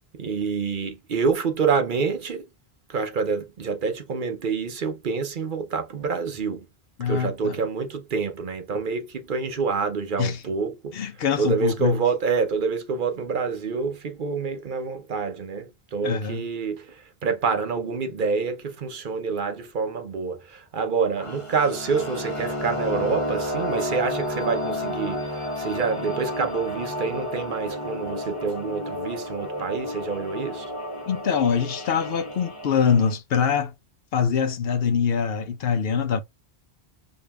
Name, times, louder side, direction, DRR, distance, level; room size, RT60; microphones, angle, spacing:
voice 1, 0.2-2.5 2.9-6.6 7.1-11.0 11.4-30.7, right 5 dB, 55° right, 0.8 m, -27 dB
voice 2, 7.0-7.6 10.2-10.4 10.9-12.0 16.0-16.4 31.1-33.7 34.1-36.2, left 7 dB, 70° left, 0.8 m, -24 dB
sound 1, 21.2-33.1, left 1 dB, 30° left, 1.1 m, -31 dB
4.9 x 2.8 x 2.2 m
omnidirectional pair, 1.1 m